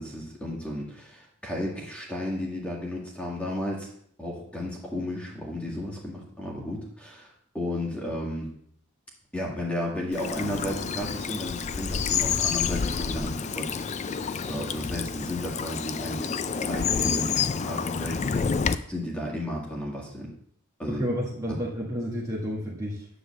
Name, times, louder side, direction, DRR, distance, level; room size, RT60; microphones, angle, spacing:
voice 1, 0.0-3.9 4.2-8.5 9.3-18.5 18.9-20.3 20.8-21.1 21.5-21.6, left 1 dB, 5° left, -3 dB, 1.9 m, -33 dB
Bird vocalization bird call bird song / Stream, 10.1-18.8, left 6 dB, 30° left, 0.3 m, -29 dB
voice 2, 20.9-23.1, equal, 15° right, -5 dB, 1.6 m, -31 dB
10.0 x 3.9 x 7.0 m, 0.66 s
head